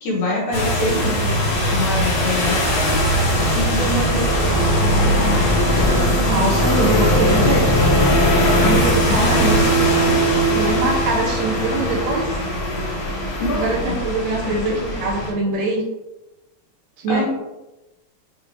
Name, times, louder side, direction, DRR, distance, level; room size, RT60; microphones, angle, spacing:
voice 1, 0.0-1.3 1.7-3.0 3.5-4.6 9.1-9.4 13.4-13.9 14.4-14.6 17.1-17.2, left 1 dB, 85° left, -4 dB, 2.8 m, -25 dB
sound 1, 0.5-15.3, equal, 50° left, 1.5 m, -19 dB
voice 2, 6.1-7.7 8.6-9.9 10.5-12.4 13.5-15.8 17.0-17.2, right 2 dB, 70° right, -1 dB, 2.1 m, -23 dB
6.5 x 2.9 x 2.7 m, 0.98 s
omnidirectional pair, 3.3 m